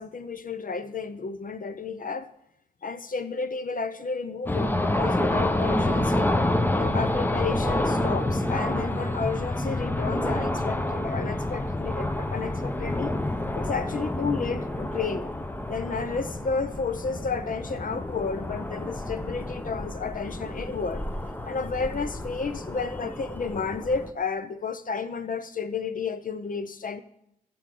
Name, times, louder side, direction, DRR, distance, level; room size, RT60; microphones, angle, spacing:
voice 1, 0.0-2.3 2.8-6.3 6.8-13.2 13.5-15.3 15.7-21.0 21.4-27.0, left 5 dB, 45° left, 11 dB, 0.8 m, -32 dB
sound 1, 4.5-24.1, left 1 dB, 10° left, 0.7 m, -28 dB
15.0 x 6.9 x 3.9 m, 0.76 s
cardioid pair, 55°, 19 cm